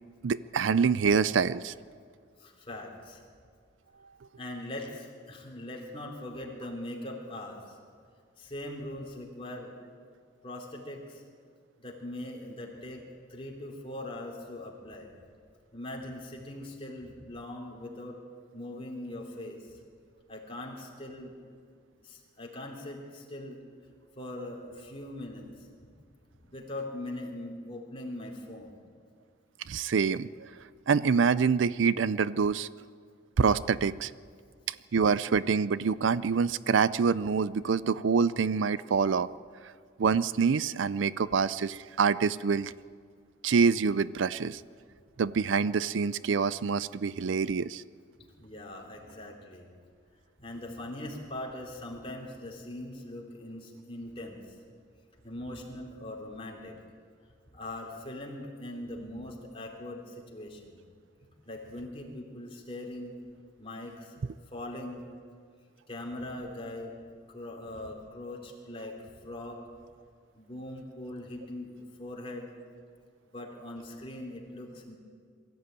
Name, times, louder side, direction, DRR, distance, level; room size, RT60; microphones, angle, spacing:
voice 1, 0.2-1.7 29.7-30.5 30.9-32.7 33.4-34.1 34.7-39.3 40.0-42.7 43.4-44.6 45.2-47.8, right 5 dB, 75° right, 17 dB, 0.4 m, -26 dB
voice 2, 2.4-3.2 4.4-7.8 8.4-9.7 10.4-11.2 11.8-13.0 13.3-15.1 15.7-18.2 18.5-19.7 20.3-21.3 22.0-23.6 24.2-25.7 26.4-28.7 48.4-49.7 50.4-54.6 55.2-56.8 57.5-60.8 61.4-63.1 63.6-64.1 64.5-65.0 65.9-66.9 67.3-69.6 70.3-71.7 72.0-72.5 73.3-74.9, left 1 dB, 30° left, 0 dB, 3.4 m, -41 dB
22.5 x 14.0 x 9.0 m, 2.1 s
head